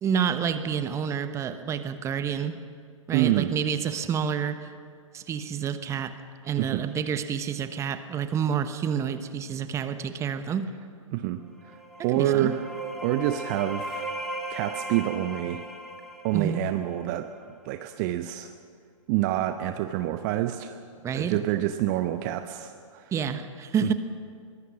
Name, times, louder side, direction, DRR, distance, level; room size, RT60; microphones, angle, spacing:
voice 1, 0.0-2.5 3.1-4.6 5.1-6.2 6.4-10.7 12.1-12.5 16.3-16.6 21.0-21.4 23.1-23.9, right 7 dB, 15° right, 11 dB, 1.0 m, -28 dB
voice 2, 3.1-3.5 6.6-6.8 11.1-11.8 12.0-12.6 13.0-14.2 14.5-15.6 16.2-17.3 17.6-18.5 19.1-20.8 21.1-23.1 23.8-23.9, right 13 dB, 35° right, 9 dB, 0.8 m, -27 dB
sound 1, 11.5-17.2, right 1 dB, ahead, 2.6 m, -37 dB
23.0 x 20.5 x 6.1 m, 2.1 s
figure-of-eight pair, 115°, 17 cm